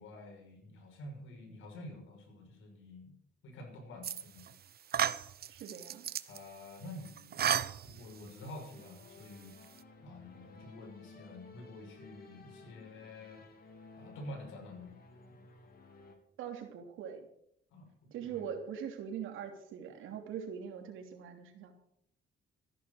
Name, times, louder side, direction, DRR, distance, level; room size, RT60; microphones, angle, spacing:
voice 1, 0.0-3.2 3.4-4.5 6.3-7.4 7.8-9.6 10.0-13.4 14.0-14.9 17.7-18.5, left 1 dB, 80° left, 2 dB, 5.9 m, -49 dB
sound 1, 4.0-4.5 4.9-6.4 7.1-8.3, right 9 dB, 50° right, 0.8 m, -33 dB
voice 2, 5.5-6.1 16.4-17.3 18.1-21.7, right 8 dB, 85° right, 4 dB, 3.1 m, -42 dB
sound 2, 8.7-16.1, left 3 dB, 50° left, 3.5 m, -56 dB
15.0 x 11.0 x 6.5 m, 0.71 s
cardioid pair, 90°, 20 cm